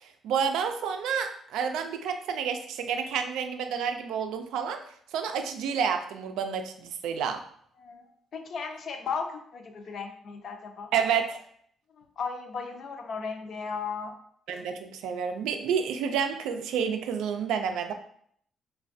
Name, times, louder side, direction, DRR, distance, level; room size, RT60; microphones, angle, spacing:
voice 1, 0.2-4.8 5.1-7.4 10.9-11.4 14.5-17.9, right 7 dB, 90° right, 7 dB, 0.3 m, -29 dB
voice 2, 7.8-10.9 12.0-14.2, left 5 dB, 60° left, 5 dB, 0.4 m, -36 dB
3.1 x 2.2 x 2.6 m, 0.64 s
cardioid pair, 90°, 0 cm